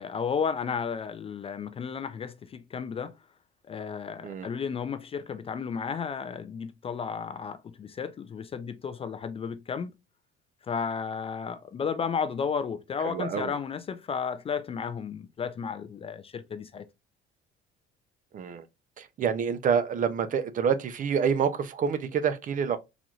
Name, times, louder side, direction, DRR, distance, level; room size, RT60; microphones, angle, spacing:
voice 1, 0.0-3.1 3.7-10.0 10.7-16.8, left 6 dB, 30° left, 0.3 m, -33 dB
voice 2, 13.0-13.5 18.3-18.6 19.0-22.8, right 7 dB, 40° right, 0.5 m, -27 dB
4.0 x 3.0 x 2.3 m
cardioid pair, 130°, 21 cm